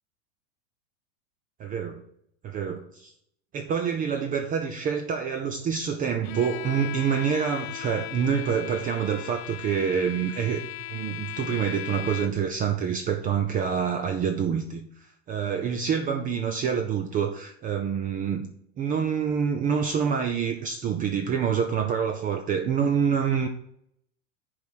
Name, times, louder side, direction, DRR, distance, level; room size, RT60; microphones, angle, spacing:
voice 1, 1.6-2.0 2.4-3.1 3.5-10.6 10.9-18.5 18.8-23.5, right 7 dB, 25° right, 6 dB, 0.6 m, -27 dB
Bowed string instrument, 6.2-12.6, left 16 dB, 55° left, 0.6 m, -38 dB
7.4 x 4.8 x 5.7 m, 0.71 s
supercardioid pair, 140°, 36 cm